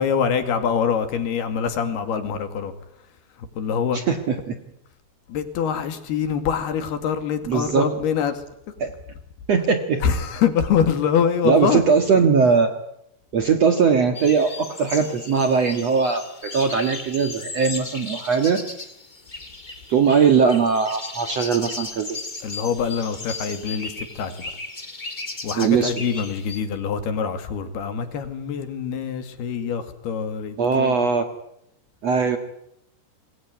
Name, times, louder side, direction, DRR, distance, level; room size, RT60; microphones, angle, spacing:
voice 1, 0.0-2.7 3.4-4.0 5.3-8.4 10.0-11.8 22.4-24.5 25.4-30.9, left 7 dB, 65° left, 9 dB, 4.1 m, -24 dB
voice 2, 3.9-4.5 7.5-7.9 8.8-8.9 9.5-10.1 11.4-12.7 13.3-18.6 19.9-22.2 25.6-26.0 30.6-31.2 32.0-32.4, right 5 dB, 50° right, 7 dB, 2.1 m, -20 dB
sound 1, 14.1-26.6, left 3 dB, 25° left, 0.9 m, -36 dB
26.0 x 22.0 x 9.6 m, 0.78 s
omnidirectional pair, 5.0 m